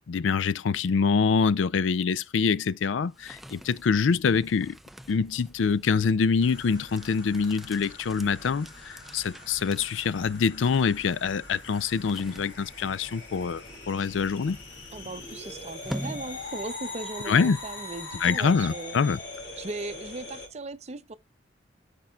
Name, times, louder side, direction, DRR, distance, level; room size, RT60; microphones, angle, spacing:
voice 1, 0.1-4.8 5.1-14.6 17.3-17.6 18.2-19.2, left 5 dB, 90° left, 0.4 m, -25 dB
Bicycle, 2.5-2.6 3.6-3.7 4.1-4.2 4.4-4.5 4.7-4.8 5.0-7.9 8.2-8.3 10.3-10.4 10.7-19.2 19.7-19.8, left 4 dB, 50° left, 2.7 m, -60 dB
sound 1, 2.9-17.0, equal, ahead, 0.3 m, -45 dB
sound 2, 6.4-20.5, left 2 dB, 70° left, 2.9 m, -42 dB
voice 2, 14.9-19.0 19.6-21.1, right 3 dB, 35° right, 0.6 m, -38 dB
13.0 x 5.2 x 2.3 m
head